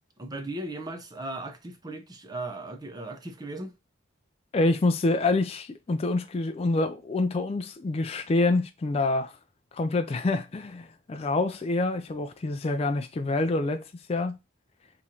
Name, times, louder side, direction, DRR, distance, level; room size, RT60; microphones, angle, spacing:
voice 1, 0.2-3.7, right 2 dB, 20° right, 0.6 m, -37 dB
voice 2, 4.5-9.4 9.7-13.8 14.1-14.4, left 2 dB, 30° left, 0.3 m, -26 dB
3.7 x 3.1 x 2.8 m
head